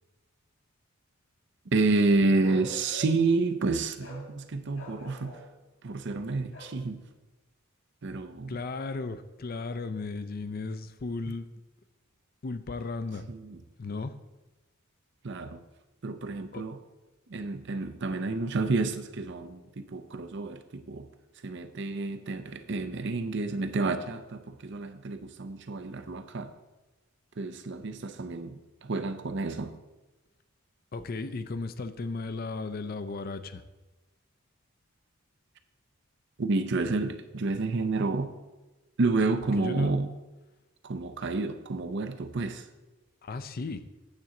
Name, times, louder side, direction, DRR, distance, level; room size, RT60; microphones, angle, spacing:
voice 1, 1.7-5.4 5.8-7.0 8.0-8.6 13.3-13.6 15.2-15.6 16.0-16.8 17.3-21.1 21.4-26.5 27.4-29.8 36.4-38.3 39.0-40.1 40.8-42.6, right 3 dB, 55° right, 0.6 m, -29 dB
Bark, 2.4-3.3 4.0-4.3 4.7-5.5 6.5-6.8, left 1 dB, 65° left, 2.1 m, -45 dB
voice 2, 8.5-11.5 12.4-13.2 13.8-14.1 16.5-16.6 30.9-33.6 39.6-39.9 43.2-43.8, left 3 dB, 45° left, 0.5 m, -35 dB
9.0 x 3.9 x 7.1 m
head